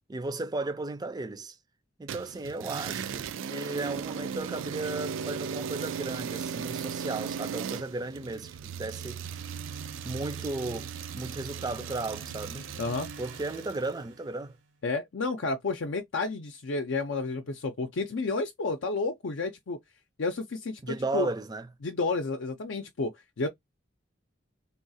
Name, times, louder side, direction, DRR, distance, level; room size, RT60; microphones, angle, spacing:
voice 1, 0.1-1.6 2.0-9.2 10.0-12.7 13.2-14.5 20.8-21.7, right 2 dB, 20° right, 0.4 m, -35 dB
sound 1, 2.1-13.8, right 7 dB, 90° right, 0.3 m, -37 dB
sound 2, 8.5-14.7, right 3 dB, 75° right, 0.8 m, -47 dB
voice 2, 12.8-13.1 14.8-19.8 20.2-21.3 21.8-23.5, left 3 dB, 70° left, 0.6 m, -31 dB
3.5 x 2.3 x 2.6 m
head